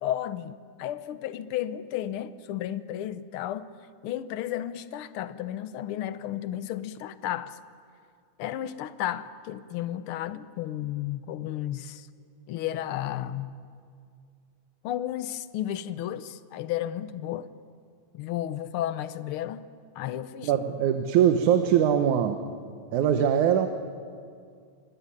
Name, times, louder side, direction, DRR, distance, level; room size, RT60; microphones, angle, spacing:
voice 1, 0.0-3.7 4.0-7.6 8.4-12.1 12.5-13.6 14.8-17.5 18.1-19.7 19.9-20.5, left 12 dB, 70° left, 1.3 m, -33 dB
voice 2, 20.4-22.4 22.9-23.7, right 9 dB, 85° right, 2.5 m, -22 dB
26.0 x 21.0 x 9.8 m
omnidirectional pair, 3.3 m